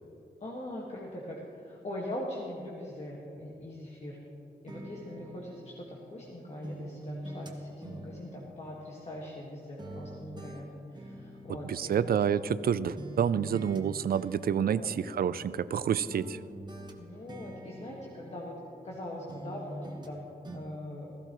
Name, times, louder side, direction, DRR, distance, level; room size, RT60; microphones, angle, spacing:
voice 1, 0.4-4.2 4.6-12.1 14.4-15.0 17.0-18.6 18.8-20.2 20.5-21.1, left 1 dB, 40° left, -4 dB, 1.6 m, -41 dB
sound 1, 4.7-6.3 6.6-9.5 9.8-12.7 13.0-13.8 14.1-15.8 16.1-19.0 19.3-20.2 20.4-20.6, right 1 dB, 25° right, 1.1 m, -45 dB
voice 2, 11.6-16.4, right 8 dB, 70° right, 16 dB, 0.4 m, -28 dB
16.0 x 15.5 x 3.1 m, 2.8 s
wide cardioid pair, 160°, 16 cm